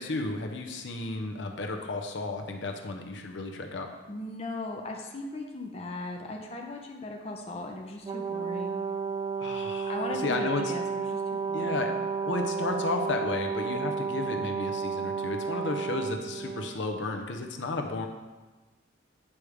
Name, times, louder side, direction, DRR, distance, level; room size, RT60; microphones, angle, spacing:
voice 1, 0.0-3.9 9.4-10.7 11.5-11.9 12.2-18.1, left 3 dB, 70° left, 3 dB, 0.6 m, -33 dB
voice 2, 4.1-8.8 9.9-12.1, left 2 dB, 30° left, 1 dB, 0.6 m, -38 dB
Brass instrument, 8.0-16.8, right 6 dB, 25° right, 0.3 m, -32 dB
8.4 x 3.2 x 4.9 m, 1.2 s
head